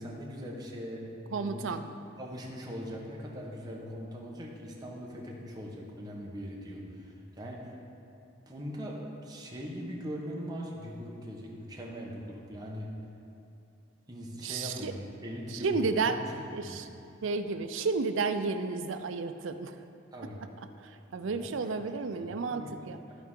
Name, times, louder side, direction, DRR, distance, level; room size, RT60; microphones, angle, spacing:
voice 1, 0.0-1.7 2.2-7.6 8.5-12.9 14.1-16.1 16.6-16.8 20.1-20.4 21.2-21.6 22.2-22.7 23.1-23.2, equal, 20° right, -3 dB, 1.1 m, -41 dB
voice 2, 1.3-1.8 14.4-14.9 15.5-16.3 16.5-16.9 17.2-19.8 20.6-23.0, right 4 dB, 80° right, 9 dB, 0.5 m, -32 dB
13.5 x 4.7 x 3.7 m, 2.8 s
head